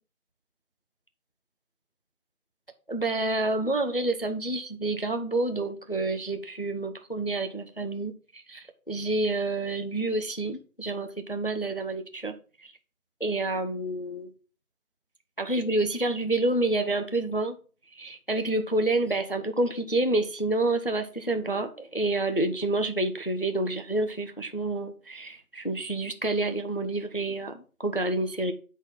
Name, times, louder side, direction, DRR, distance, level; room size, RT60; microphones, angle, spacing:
voice 1, 2.9-12.3 12.6-12.7 13.2-14.3 15.4-17.6 18.0-28.5, right 2 dB, 40° left, 7 dB, 0.4 m, -28 dB
8.1 x 4.0 x 3.8 m, 0.38 s
figure-of-eight pair, 165°, 44 cm